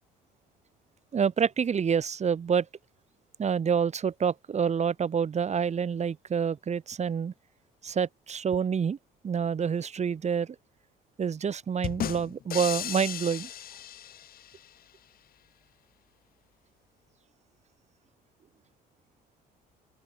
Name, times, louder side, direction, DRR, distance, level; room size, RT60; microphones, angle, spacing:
voice 1, 1.1-2.7 3.4-7.3 7.8-9.0 9.2-10.6 11.2-13.5, right 7 dB, 40° right, 3.6 m, -27 dB
sound 1, 11.8-14.7, left 11 dB, 55° left, 2.0 m, -35 dB
open air
supercardioid pair, 85°, 18 cm